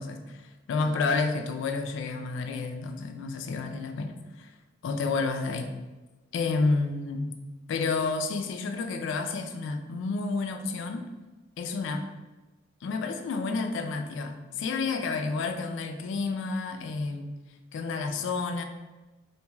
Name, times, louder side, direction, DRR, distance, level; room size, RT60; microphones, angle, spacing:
voice 1, 0.0-4.5 4.8-5.7 6.3-7.3 7.7-11.1 11.6-12.1 12.8-17.4 17.7-18.6, left 4 dB, 70° left, 7 dB, 0.3 m, -30 dB
2.5 x 2.3 x 3.1 m, 1.2 s
head